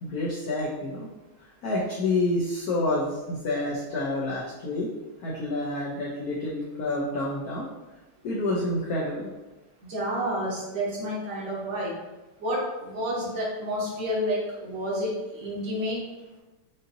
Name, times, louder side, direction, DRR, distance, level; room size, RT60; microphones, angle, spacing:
voice 1, 0.0-1.1 1.6-4.9 5.2-7.7 8.2-9.3, left 2 dB, 80° left, -4 dB, 0.8 m, -28 dB
voice 2, 9.9-11.9 12.4-16.0, equal, 60° right, -6 dB, 1.7 m, -30 dB
5.5 x 2.7 x 2.6 m, 1.1 s
omnidirectional pair, 2.4 m